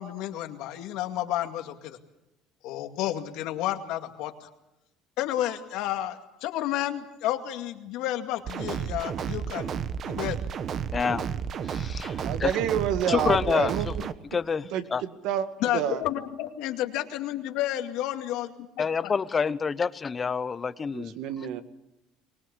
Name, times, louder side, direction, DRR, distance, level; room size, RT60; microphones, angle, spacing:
voice 1, 0.0-2.0 2.6-4.5 5.2-9.8 10.1-10.4 15.6-18.5, left 13 dB, 75° left, 6 dB, 2.2 m, -31 dB
sound 1, 8.5-14.1, right 7 dB, 45° right, 1.2 m, -32 dB
voice 2, 10.9-11.2 11.6-12.5 13.1-13.9 14.3-14.6 14.9-15.0 18.8-21.1, left 5 dB, 25° left, 15 dB, 0.9 m, -27 dB
voice 3, 12.2-14.1 14.7-14.8 15.2-15.5 15.7-16.0 21.2-21.6, right 10 dB, 70° right, 9 dB, 1.9 m, -28 dB
24.0 x 19.5 x 8.3 m, 0.91 s
cardioid pair, 120°, 0 cm